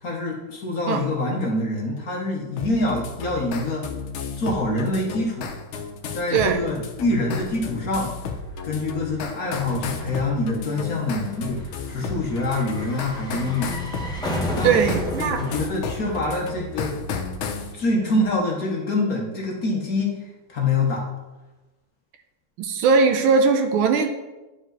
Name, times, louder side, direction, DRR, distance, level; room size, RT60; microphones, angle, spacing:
voice 1, 0.0-3.9 4.4-5.5 6.1-8.1 8.6-13.7 14.5-14.8 15.3-17.0 17.7-21.0, left 2 dB, 50° left, -1 dB, 1.2 m, -25 dB
sound 1, 2.6-17.7, left 5 dB, 75° left, 1.5 m, -33 dB
voice 2, 6.3-6.6 14.6-15.4 22.6-24.1, right 5 dB, 75° right, 6 dB, 1.5 m, -19 dB
sound 2, 6.8-17.0 17.2-17.3, equal, 5° left, 0.6 m, -35 dB
9.8 x 4.8 x 3.9 m, 1.1 s
omnidirectional pair, 2.4 m